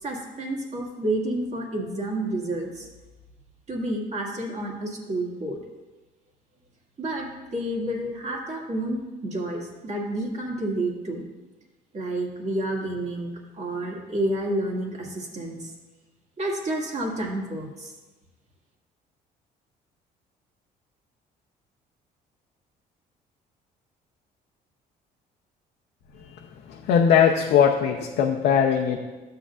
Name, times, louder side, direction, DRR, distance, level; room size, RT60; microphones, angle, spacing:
voice 1, 0.0-2.9 3.7-5.6 7.0-11.2 11.9-15.7 16.4-17.9, right 1 dB, 40° right, -1 dB, 1.9 m, -30 dB
voice 2, 26.7-29.0, left 7 dB, 80° left, 0 dB, 0.7 m, -20 dB
12.5 x 8.0 x 2.5 m, 1.2 s
cardioid pair, 110°, 17 cm